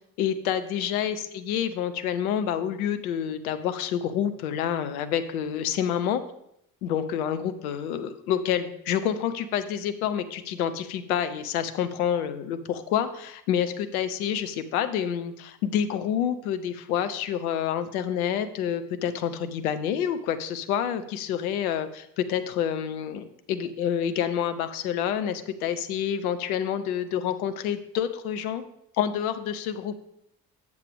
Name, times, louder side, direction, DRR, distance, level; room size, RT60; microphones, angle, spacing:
voice 1, 0.2-6.2 6.8-28.6 29.0-30.0, left 9 dB, 70° left, 10 dB, 0.7 m, -28 dB
7.6 x 7.3 x 3.5 m, 0.74 s
figure-of-eight pair, 45°, 46 cm